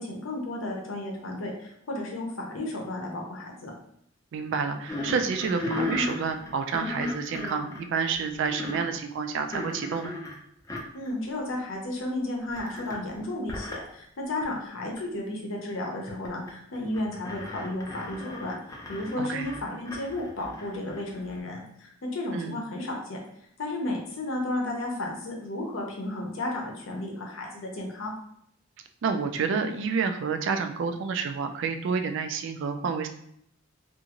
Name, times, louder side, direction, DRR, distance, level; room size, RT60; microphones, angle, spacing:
voice 1, 0.0-3.7 10.9-18.6 18.9-23.2 23.6-28.1, left 1 dB, 75° left, 0 dB, 0.7 m, -33 dB
voice 2, 4.3-10.1 19.2-19.5 22.3-22.6 29.0-33.1, right 5 dB, 65° right, 6 dB, 0.3 m, -29 dB
sound 1, 4.9-9.0 9.5-10.4 10.7-11.1 11.4-11.5 12.6-13.1 13.5-13.8 14.4-14.5 15.0-15.1 16.1-16.5 16.8-21.3, left 2 dB, 15° left, 0.5 m, -35 dB
2.5 x 2.4 x 2.8 m, 0.73 s
head